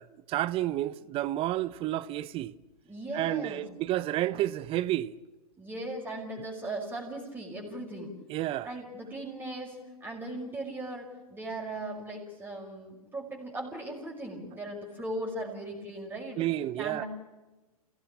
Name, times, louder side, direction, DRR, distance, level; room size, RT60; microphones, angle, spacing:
voice 1, 0.0-2.5 3.1-5.2 8.3-8.7 16.4-17.0, right 14 dB, 30° right, 0.7 m, -30 dB
voice 2, 2.9-3.6 5.6-8.1 8.6-16.5 16.8-17.1, right 1 dB, 10° right, 5.7 m, -38 dB
27.5 x 17.5 x 8.6 m
hypercardioid pair, 120°, 19 cm